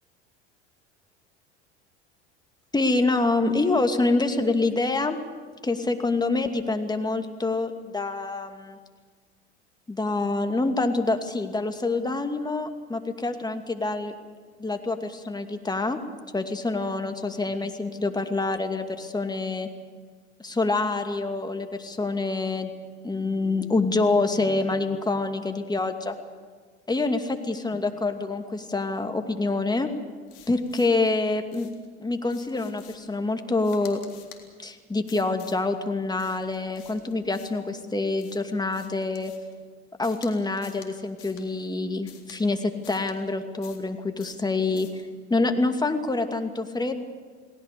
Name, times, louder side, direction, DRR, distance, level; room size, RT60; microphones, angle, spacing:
voice 1, 2.7-5.2 5.6-8.8 9.9-14.1 14.6-16.0 16.3-19.7 20.4-22.7 23.0-26.2 26.9-29.9 30.5-31.7 32.0-34.0 34.6-39.3 40.0-45.0 45.3-47.0, left 3 dB, 10° left, 6 dB, 2.5 m, -26 dB
sound 1, 30.3-31.1 31.5-31.9 32.3-33.1 33.6-34.4 35.1-35.6 36.2-37.7 38.2-39.5 40.0-40.3 40.6-40.9 41.2-41.5 42.1-42.4 42.8-43.2 43.6-43.9 44.2-44.4 44.8-45.0, left 10 dB, 60° left, 3.8 m, -50 dB
29.5 x 19.0 x 6.9 m, 1.5 s
hypercardioid pair, 75°, 33 cm